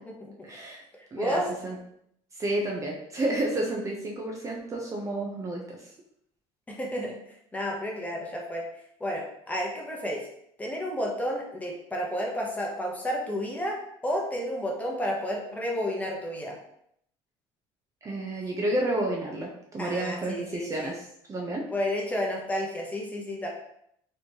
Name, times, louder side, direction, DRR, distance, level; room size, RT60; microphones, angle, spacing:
voice 1, 0.4-0.8 1.1-1.8 2.3-5.8 18.0-21.7, right 1 dB, 25° right, -1 dB, 0.6 m, -31 dB
voice 2, 1.2-1.5 6.7-7.2 7.5-8.6 9.0-10.2 10.6-16.6 19.8-20.9 21.7-23.5, equal, 10° left, -1 dB, 0.9 m, -31 dB
4.0 x 3.1 x 2.8 m, 0.72 s
cardioid pair, 130°, 12 cm